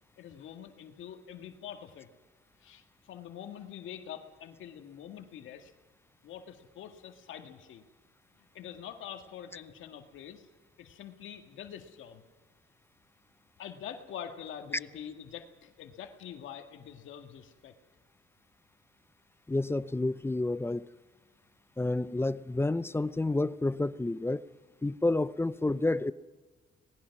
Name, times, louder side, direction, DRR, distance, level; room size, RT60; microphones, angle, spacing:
voice 1, 0.2-2.1 2.6-5.7 6.2-7.8 8.4-10.5 10.8-12.2 13.6-17.7, left 9 dB, 80° left, 2.0 m, -45 dB
voice 2, 19.5-20.9 21.8-24.5 24.8-26.1, left 2 dB, 10° left, 0.6 m, -29 dB
26.0 x 19.5 x 6.0 m
cardioid pair, 90°, 20 cm